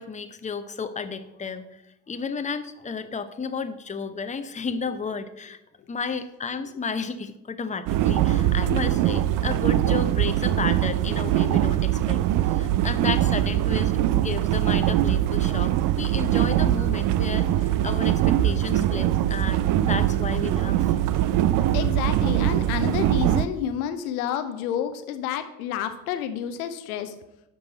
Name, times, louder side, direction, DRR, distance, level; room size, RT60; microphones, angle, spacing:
voice 1, 0.0-1.8 2.1-5.6 5.9-20.9, left 5 dB, 15° left, 9 dB, 0.8 m, -32 dB
sound 1, 7.9-23.5, right 13 dB, 45° right, 0.5 m, -22 dB
voice 2, 21.7-27.2, left 9 dB, 70° left, 9 dB, 0.8 m, -29 dB
10.5 x 6.2 x 4.1 m, 0.90 s
figure-of-eight pair, 45°, 45 cm